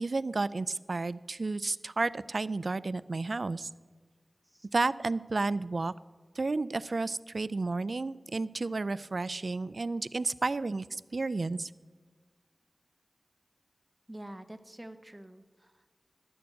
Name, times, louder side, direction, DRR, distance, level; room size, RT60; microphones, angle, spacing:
voice 1, 0.0-3.7 4.7-5.9 6.4-11.7, right 3 dB, 70° right, 17 dB, 0.3 m, -32 dB
voice 2, 14.1-15.9, right 1 dB, 20° right, 9 dB, 0.7 m, -47 dB
11.5 x 6.9 x 7.8 m, 1.4 s
wide cardioid pair, 45°, 0 cm